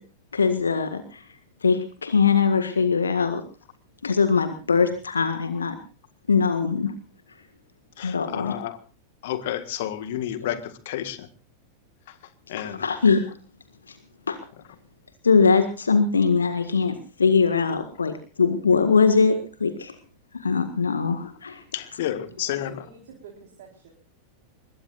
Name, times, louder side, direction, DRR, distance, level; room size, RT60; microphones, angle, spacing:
voice 1, 0.3-1.2 1.6-3.4 4.0-5.7 6.3-6.9 8.0-8.5 12.8-13.3 14.3-14.4 15.2-19.9 20.3-21.6, left 5 dB, 75° left, 9 dB, 1.7 m, -21 dB
voice 2, 8.0-8.8 9.2-11.3 12.1-12.2 12.5-12.9 21.7-22.9, left 12 dB, 55° left, 11 dB, 1.7 m, -31 dB
voice 3, 22.4-23.9, right 6 dB, 55° right, 1 dB, 4.3 m, -48 dB
24.0 x 21.5 x 2.5 m, 0.36 s
figure-of-eight pair, 90°, 0 cm